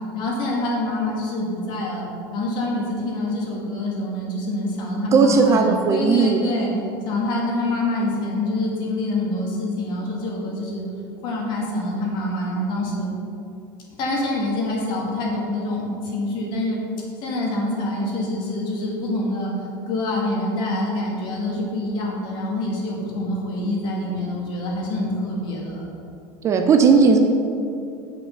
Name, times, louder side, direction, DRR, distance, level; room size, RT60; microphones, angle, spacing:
voice 1, 0.1-2.1 2.3-6.7 7.1-10.8 11.2-13.1 14.0-16.8 17.2-19.5 19.9-25.9, left 1 dB, 45° left, -3 dB, 2.3 m, -26 dB
voice 2, 5.1-6.4 26.4-27.2, right 5 dB, 30° right, 5 dB, 0.6 m, -16 dB
8.3 x 5.9 x 5.4 m, 2.7 s
supercardioid pair, 145°, 11 cm